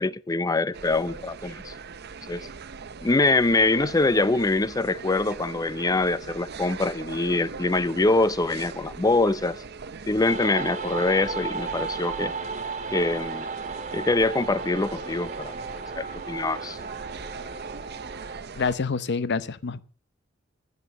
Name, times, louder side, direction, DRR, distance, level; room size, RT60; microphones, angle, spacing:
voice 1, 0.0-1.7 2.3-2.5 3.0-9.6 10.1-12.3 12.9-13.5 13.9-15.5 16.0-16.8, left 2 dB, 20° left, 0.5 m, -24 dB
sound 1, 0.7-18.8, right 5 dB, 55° right, 0.7 m, -40 dB
sound 2, 10.2-18.4, right 4 dB, 35° right, 1.8 m, -35 dB
voice 2, 18.6-19.8, left 4 dB, 55° left, 0.7 m, -27 dB
15.0 x 8.1 x 6.4 m
head